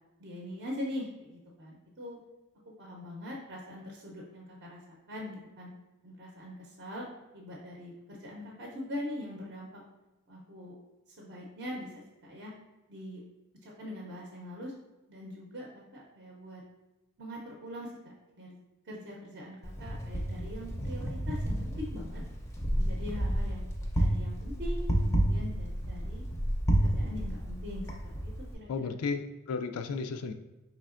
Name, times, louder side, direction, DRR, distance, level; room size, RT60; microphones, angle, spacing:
voice 1, 0.2-2.2 2.8-5.7 6.0-7.1 7.3-9.8 10.3-10.7 11.1-12.5 12.9-13.2 13.6-14.7 15.1-16.6 17.2-17.9 18.3-18.6 18.8-22.2 22.7-23.6 23.9-26.2 26.8-27.9 28.2-28.9, left 1 dB, 50° right, -2 dB, 0.6 m, -42 dB
Wind, 19.6-28.5, equal, 15° left, 0.4 m, -31 dB
voice 2, 28.7-30.3, left 4 dB, 80° left, 9 dB, 0.3 m, -34 dB
4.8 x 3.2 x 2.4 m, 1.1 s
head